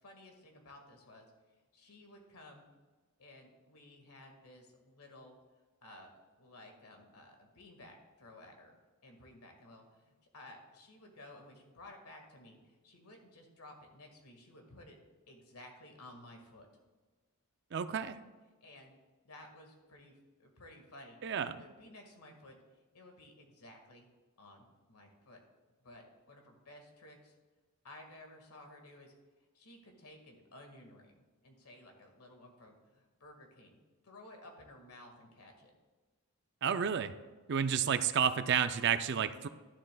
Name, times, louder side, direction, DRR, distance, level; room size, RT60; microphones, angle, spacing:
voice 1, 0.0-1.3 1.7-2.6 3.2-5.3 5.8-6.1 6.4-8.7 9.0-15.0 15.3-16.7 18.6-19.0 19.2-24.1 24.4-25.4 25.8-27.4 27.8-29.1 29.5-33.8 34.0-35.7, left 1 dB, 90° left, 3 dB, 1.8 m, -55 dB
voice 2, 17.7-18.2 21.2-21.6 36.6-37.1 37.5-39.5, right 7 dB, 50° right, 11 dB, 0.4 m, -31 dB
11.5 x 10.5 x 2.3 m, 1.3 s
head